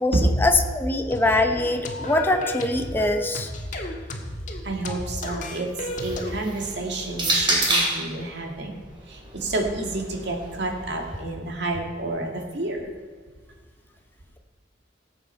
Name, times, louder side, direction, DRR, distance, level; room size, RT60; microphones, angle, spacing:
voice 1, 0.0-3.5, left 2 dB, 10° left, 5 dB, 0.8 m, -23 dB
sound 1, 1.1-6.3, left 1 dB, 45° left, 1.6 m, -33 dB
voice 2, 4.6-13.0, right 2 dB, 65° right, 2 dB, 2.1 m, -30 dB
sound 2, 5.6-8.1 9.1-11.2, right 1 dB, 30° right, 2.5 m, -28 dB
19.0 x 7.9 x 4.5 m, 1.5 s
head